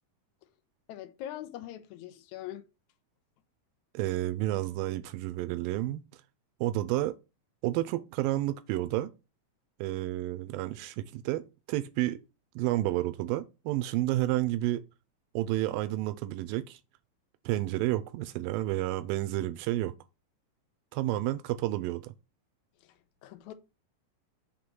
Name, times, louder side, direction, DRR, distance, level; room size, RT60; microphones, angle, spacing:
voice 1, 0.9-2.7 22.8-23.5, left 12 dB, 75° left, 1.8 m, -42 dB
voice 2, 3.9-6.0 6.6-7.1 7.6-9.1 9.8-12.2 12.6-14.8 15.4-16.8 17.5-19.9 20.9-22.1, right 15 dB, 90° right, 2.3 m, -30 dB
6.5 x 3.3 x 6.0 m
omnidirectional pair, 4.0 m